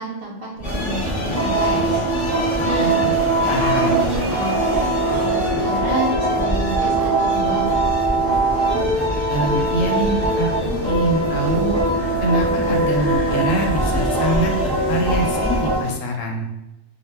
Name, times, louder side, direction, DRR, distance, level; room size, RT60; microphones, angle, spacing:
voice 1, 0.0-3.3 3.6-7.7, right 2 dB, 60° right, -3 dB, 0.7 m, -29 dB
sound 1, 0.6-15.9, left 1 dB, 40° left, 0.6 m, -28 dB
sound 2, 0.6-15.8, right 2 dB, 20° right, 0.7 m, -22 dB
voice 2, 3.5-4.0 9.3-11.8 12.2-16.5, right 1 dB, 85° left, 2 dB, 0.9 m, -24 dB
2.1 x 2.1 x 3.3 m, 0.93 s
omnidirectional pair, 1.3 m